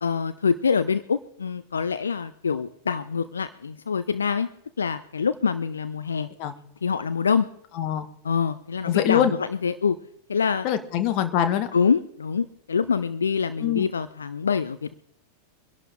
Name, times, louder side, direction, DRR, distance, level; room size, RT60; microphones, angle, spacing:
voice 1, 0.0-4.5 4.8-6.3 6.8-7.5 8.2-9.4 9.6-10.0 10.3-10.7 11.7-14.9, left 6 dB, 70° left, 13 dB, 0.5 m, -25 dB
voice 2, 7.7-8.1 8.8-9.3 10.6-11.7 13.6-13.9, left 10 dB, 45° left, 9 dB, 1.4 m, -23 dB
24.0 x 11.5 x 3.6 m, 0.71 s
figure-of-eight pair, 90°, 0 cm